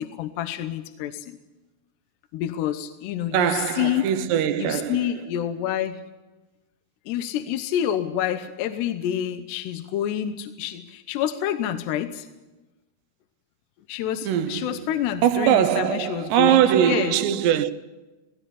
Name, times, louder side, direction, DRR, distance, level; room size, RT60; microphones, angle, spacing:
voice 1, 0.0-1.4 2.3-4.1 4.6-6.0 7.1-12.3 13.9-17.1, left 10 dB, 75° left, 3.0 m, -28 dB
voice 2, 3.3-5.2 14.2-14.9 15.2-17.7, right 10 dB, 80° right, 2.9 m, -22 dB
18.5 x 17.0 x 10.0 m
omnidirectional pair, 5.1 m